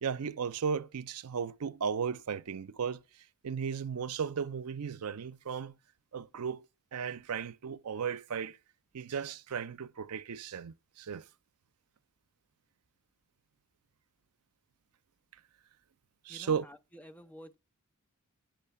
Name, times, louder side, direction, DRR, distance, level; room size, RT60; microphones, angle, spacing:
voice 1, 0.0-3.0 3.4-5.7 6.1-6.6 6.9-8.6 8.9-11.2 16.3-16.7, right 6 dB, 85° right, 0.5 m, -35 dB
voice 2, 16.3-17.6, equal, 5° left, 0.6 m, -51 dB
9.2 x 6.4 x 6.8 m
head